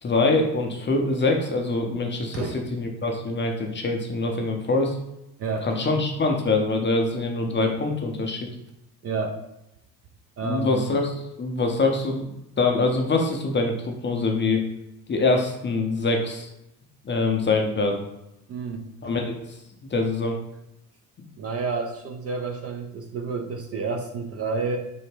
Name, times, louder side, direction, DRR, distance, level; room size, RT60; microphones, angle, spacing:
voice 1, 0.0-5.0 5.6-8.5 10.4-12.3 12.6-14.6 15.1-16.5 17.0-18.0 19.0-19.6 19.9-20.4, left 3 dB, 25° left, 2 dB, 0.6 m, -24 dB
voice 2, 5.4-5.7 9.0-9.4 10.4-10.8 18.5-18.8 21.4-24.8, right 4 dB, 35° right, 4 dB, 0.4 m, -29 dB
3.4 x 2.1 x 3.2 m, 0.87 s
supercardioid pair, 70°, 44 cm